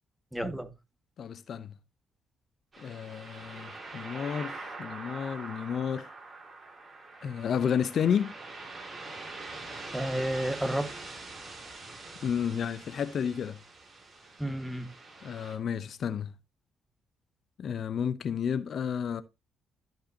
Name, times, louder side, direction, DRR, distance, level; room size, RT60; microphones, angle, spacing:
voice 1, 0.3-0.7 9.9-11.1 14.4-14.9, right 1 dB, 5° right, 1.7 m, -31 dB
voice 2, 1.2-1.7 2.8-6.1 7.2-8.3 12.2-13.6 15.2-16.3 17.6-19.2, left 7 dB, 60° left, 0.7 m, -31 dB
sound 1, 2.7-15.6, right 3 dB, 35° right, 6.7 m, -44 dB
15.0 x 5.5 x 2.8 m
cardioid pair, 75°, 0 cm